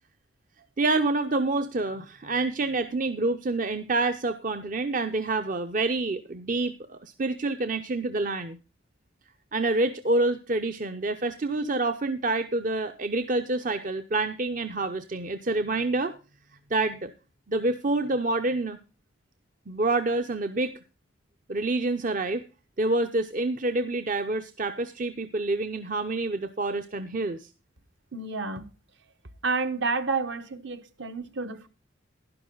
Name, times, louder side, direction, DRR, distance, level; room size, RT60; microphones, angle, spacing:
voice 1, 0.8-8.6 9.5-16.2 16.7-17.1 17.5-18.8 19.7-20.8 21.5-22.4 22.8-27.5, right 2 dB, 40° right, 0.6 m, -27 dB
voice 2, 28.1-28.7 29.4-31.7, right 4 dB, 60° right, 1.1 m, -30 dB
11.5 x 11.0 x 3.8 m
head